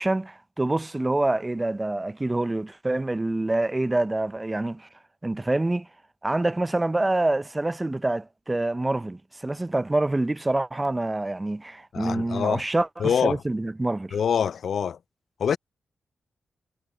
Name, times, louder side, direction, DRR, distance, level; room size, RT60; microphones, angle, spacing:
voice 1, 0.0-4.9 5.2-5.9 6.2-14.2, right 2 dB, 25° right, 0.5 m, -26 dB
voice 2, 11.9-12.6 13.0-13.4 14.1-15.0 15.4-15.6, left 7 dB, 75° left, 0.5 m, -25 dB
supercardioid pair, 45°, 0 cm